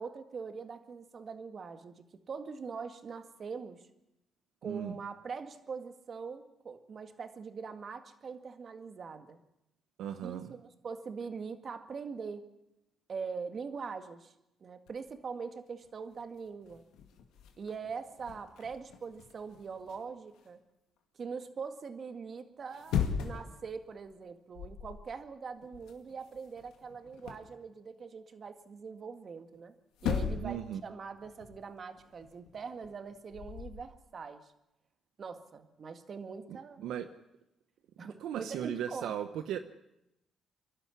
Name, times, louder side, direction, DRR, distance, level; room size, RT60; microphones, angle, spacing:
voice 1, 0.0-3.8 4.6-9.4 10.2-12.4 13.1-14.3 14.6-16.8 17.6-20.6 21.2-29.7 30.0-34.5 35.2-36.8 38.0-39.1, right 5 dB, 45° right, 8 dB, 2.0 m, -42 dB
voice 2, 4.6-5.0 10.0-10.6 30.4-30.8 36.5-37.1 38.0-39.6, right 10 dB, 85° right, 9 dB, 1.0 m, -37 dB
sound 1, 14.9-15.2 15.8-15.9 16.2-20.5 22.6-23.6 24.0-24.2 24.5-25.1 25.3-27.5 29.5-29.6 29.9-30.7 30.9-33.8, left 7 dB, 85° left, 2.2 m, -38 dB
26.0 x 12.0 x 9.9 m, 0.87 s
cardioid pair, 90°, 0 cm